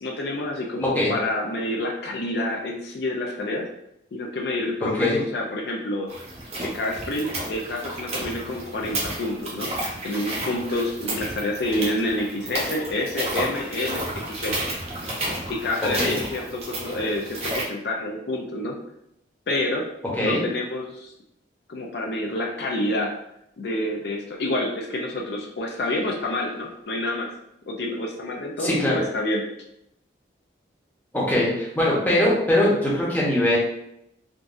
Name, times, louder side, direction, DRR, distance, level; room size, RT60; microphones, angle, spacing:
voice 1, 0.0-3.7 4.1-6.1 6.6-9.7 10.0-14.6 15.5-18.8 19.5-19.9 20.2-21.1 21.7-23.1 23.6-27.3 27.7-29.4, left 1 dB, 65° left, 0 dB, 0.4 m, -28 dB
voice 2, 4.8-5.2 15.8-16.2 20.0-20.4 28.6-29.0 31.1-33.6, left 1 dB, 10° left, -6 dB, 0.8 m, -22 dB
sound 1, 6.1-17.6, right 1 dB, 35° right, 0.7 m, -32 dB
3.8 x 2.4 x 2.4 m, 0.78 s
head